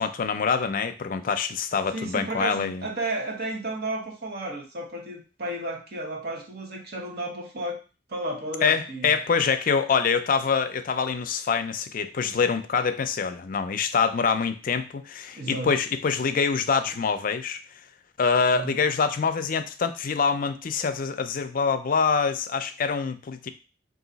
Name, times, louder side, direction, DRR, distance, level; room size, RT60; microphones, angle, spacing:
voice 1, 0.0-2.9 8.6-17.6 18.2-23.5, left 5 dB, 45° left, 10 dB, 0.4 m, -25 dB
voice 2, 1.9-7.8 8.1-9.1 15.3-15.7 18.5-18.7, right 2 dB, 55° right, 1 dB, 1.0 m, -33 dB
3.9 x 2.6 x 3.9 m, 0.33 s
head